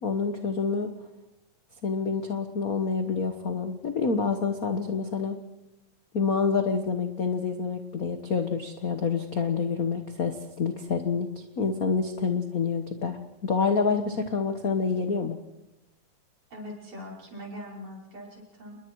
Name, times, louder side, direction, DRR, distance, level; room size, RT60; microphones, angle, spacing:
voice 1, 0.0-0.9 1.8-5.3 6.1-15.4, left 5 dB, 50° left, 6 dB, 1.1 m, -27 dB
voice 2, 16.5-18.8, left 1 dB, 45° right, -2 dB, 6.4 m, -41 dB
29.0 x 21.5 x 4.7 m, 0.91 s
omnidirectional pair, 3.4 m